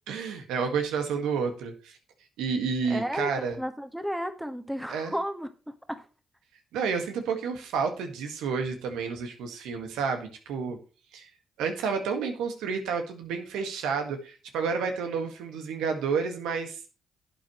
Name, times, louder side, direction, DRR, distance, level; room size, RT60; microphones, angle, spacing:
voice 1, 0.1-2.0 2.4-3.6 4.9-5.1 6.7-10.8 11.1-11.3 11.6-16.8, right 5 dB, 85° right, 1.8 m, -30 dB
voice 2, 2.9-5.5 5.9-6.0, equal, 5° right, 1.6 m, -33 dB
11.5 x 8.4 x 3.1 m
supercardioid pair, 55°, 0 cm